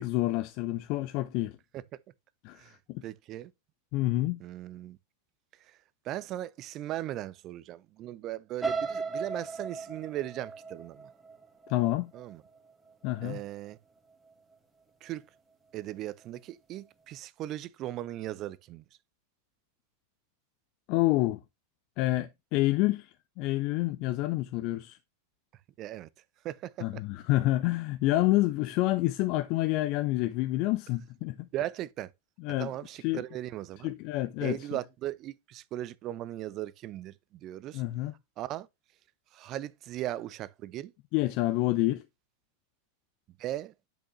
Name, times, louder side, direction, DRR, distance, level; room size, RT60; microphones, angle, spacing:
voice 1, 0.0-1.6 2.4-3.0 3.9-4.4 11.7-12.1 13.0-13.4 20.9-21.4 22.0-25.0 26.8-31.5 32.4-32.7 33.0-33.2 33.8-34.6 37.7-38.1 41.1-42.0, left 17 dB, 45° left, 0.6 m, -28 dB
voice 2, 3.0-3.5 4.4-5.0 5.6-5.8 6.0-11.1 12.1-12.4 13.2-13.8 15.0-15.3 15.7-18.8 25.8-26.1 26.4-27.0 31.5-32.1 32.6-33.9 34.4-37.8 38.4-38.7 39.3-40.9 43.4-43.7, right 13 dB, 35° right, 0.6 m, -38 dB
sound 1, 8.6-12.6 13.0-13.4 13.7-13.8, right 4 dB, 10° right, 1.8 m, -36 dB
10.0 x 6.1 x 3.1 m
figure-of-eight pair, 90°, 0 cm